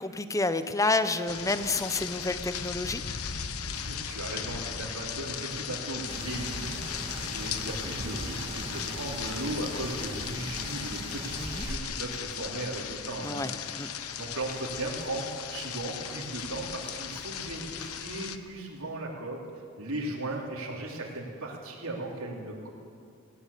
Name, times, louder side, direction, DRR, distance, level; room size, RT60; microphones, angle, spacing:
voice 1, 0.0-3.0 11.4-11.7 13.2-13.5 13.8-13.9, left 3 dB, 15° left, 11 dB, 0.8 m, -29 dB
sound 1, 1.3-18.4, left 8 dB, 85° left, 1.1 m, -37 dB
voice 2, 3.7-13.5 14.2-19.4 19.8-22.7, right 2 dB, 85° right, -2 dB, 3.3 m, -37 dB
sound 2, 6.1-11.8, right 1 dB, 25° right, 1.6 m, -39 dB
19.0 x 18.5 x 8.5 m, 2.4 s
head